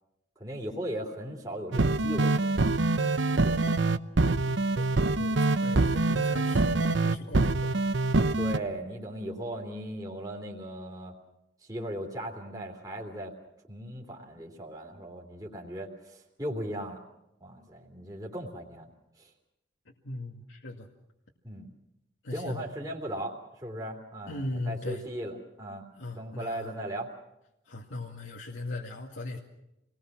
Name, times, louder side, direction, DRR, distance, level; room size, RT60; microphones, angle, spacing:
voice 1, 0.4-2.4 3.4-3.6 8.4-11.1 11.6-13.3 13.7-17.0 17.4-18.9 19.2-19.3 21.4-21.7 22.3-25.8 26.1-27.1, right 1 dB, 20° right, 0 dB, 3.0 m, -37 dB
sound 1, 1.7-8.6, right 2 dB, 75° right, 0.8 m, -25 dB
voice 2, 4.2-7.9 20.0-20.9 22.2-22.7 24.3-25.0 26.0-26.7 27.7-29.4, left 2 dB, 85° left, -1 dB, 2.1 m, -39 dB
28.0 x 20.0 x 6.2 m, 0.87 s
head